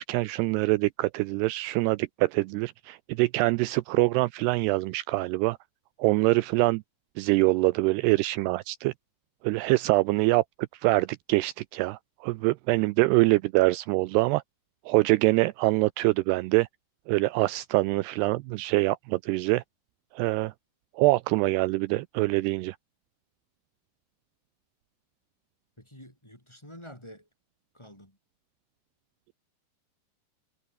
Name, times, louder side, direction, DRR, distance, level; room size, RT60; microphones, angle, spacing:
voice 1, 0.0-5.6 6.0-6.8 7.2-8.9 9.4-10.4 10.7-14.4 14.9-16.7 17.1-19.6 20.1-20.5 21.0-22.8, right 21 dB, 85° right, 2.4 m, -24 dB
voice 2, 25.8-27.3 27.7-28.2, equal, 5° left, 4.7 m, -48 dB
omnidirectional pair, 5.1 m